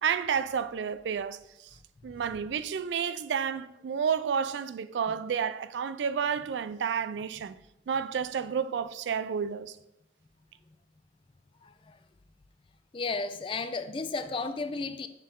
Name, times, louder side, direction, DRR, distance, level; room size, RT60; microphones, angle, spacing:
voice 1, 0.0-1.7 2.0-7.5 7.9-9.8, right 7 dB, 90° right, 0.4 m, -30 dB
voice 2, 12.9-15.1, left 3 dB, 30° left, 0.3 m, -33 dB
7.4 x 4.1 x 3.6 m
head